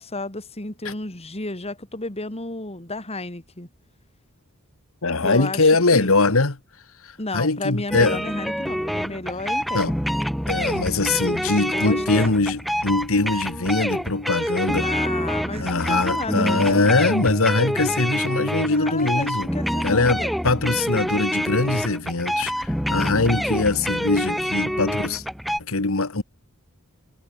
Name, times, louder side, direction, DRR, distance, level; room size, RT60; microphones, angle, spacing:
voice 1, 0.0-3.7 5.2-6.1 7.2-10.0 11.7-12.4 14.8-16.8 18.6-20.3, left 2 dB, 30° left, 3.1 m, -32 dB
voice 2, 5.0-6.6 7.3-8.2 9.7-9.9 10.5-14.9 15.6-19.5 19.8-25.2 25.7-26.2, left 3 dB, 65° left, 1.7 m, -22 dB
sound 1, 7.9-25.6, equal, ahead, 2.0 m, -26 dB
sound 2, 11.1-11.2 12.2-12.3 13.3-13.6 14.4-14.5 15.5-15.7 16.6-16.8, right 4 dB, 30° right, 4.4 m, -44 dB
head